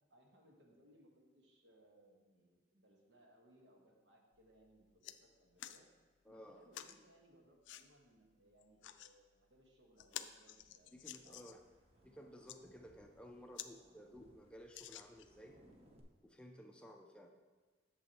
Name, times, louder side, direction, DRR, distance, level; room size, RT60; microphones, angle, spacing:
voice 1, 0.1-5.9 6.3-10.9 11.2-11.5 11.9-12.3, right 1 dB, 75° right, 0 dB, 1.3 m, -67 dB
sound 1, 4.3-4.5 4.8-5.2 5.6-5.8 6.7-7.0 7.6-7.8 8.6-9.1 9.6-9.7 10.0-11.7 12.3-12.6 13.1-13.2 13.5-13.7 14.1-14.2 14.7-15.4 16.1-16.2, left 12 dB, 80° left, 0.3 m, -50 dB
voice 2, 6.3-6.7 10.9-11.6 12.0-15.6 16.2-17.3, equal, 5° left, 3 dB, 0.4 m, -56 dB
sound 2, 10.6-16.0, right 1 dB, 35° right, 0.8 m, -68 dB
8.1 x 7.0 x 2.9 m, 1.4 s
head